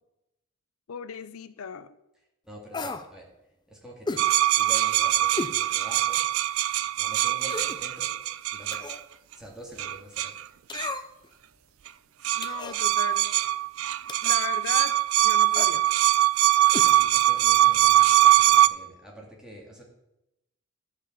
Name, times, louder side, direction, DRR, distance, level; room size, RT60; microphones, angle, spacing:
voice 1, 0.9-2.0 12.4-13.3 14.2-15.9, left 7 dB, 75° left, 14 dB, 0.5 m, -37 dB
voice 2, 2.5-3.3 3.7-6.2 7.0-8.1 8.5-8.9 9.3-10.4 16.8-19.8, right 1 dB, 5° right, -2 dB, 2.0 m, -45 dB
sound 1, 2.7-3.1 4.1-4.3 5.4-5.6 6.1-6.2 7.4-7.8 8.7-9.1 10.7-11.3 12.4-12.8 14.1-14.4 15.5-15.7 16.7-16.9 17.2-17.3, left 3 dB, 20° left, 0.5 m, -34 dB
sound 2, 4.2-9.0 9.8-10.4 10.7-10.9 11.9-12.0 12.2-18.7, right 13 dB, 70° right, 0.4 m, -22 dB
11.0 x 5.1 x 7.2 m, 0.89 s
head